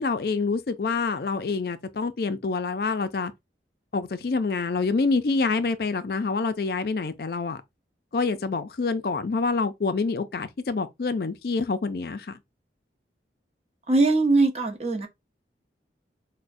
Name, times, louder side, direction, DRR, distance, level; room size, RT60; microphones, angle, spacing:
voice 1, 0.0-3.3 3.9-7.6 8.1-12.4, left 4 dB, 55° left, 0.4 m, -27 dB
voice 2, 13.9-15.1, right 3 dB, 35° right, 0.8 m, -21 dB
6.1 x 2.1 x 2.6 m
head